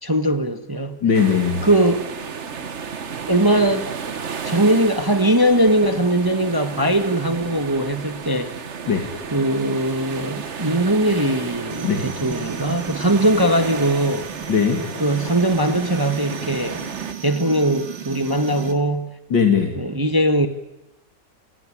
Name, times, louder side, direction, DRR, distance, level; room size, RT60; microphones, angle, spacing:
voice 1, 0.0-1.0 1.6-2.2 3.3-3.9 4.4-8.5 9.3-14.3 15.0-16.8 17.2-19.2 19.8-20.5, right 1 dB, 15° right, 1.0 m, -20 dB
voice 2, 1.0-1.6 8.9-9.1 11.8-12.0 14.5-14.8 19.3-19.7, left 6 dB, 85° left, 3.1 m, -19 dB
sound 1, 1.1-17.1, right 6 dB, 45° right, 1.4 m, -33 dB
sound 2, 11.7-18.7, right 7 dB, 80° right, 2.8 m, -35 dB
29.0 x 17.5 x 9.9 m
omnidirectional pair, 2.0 m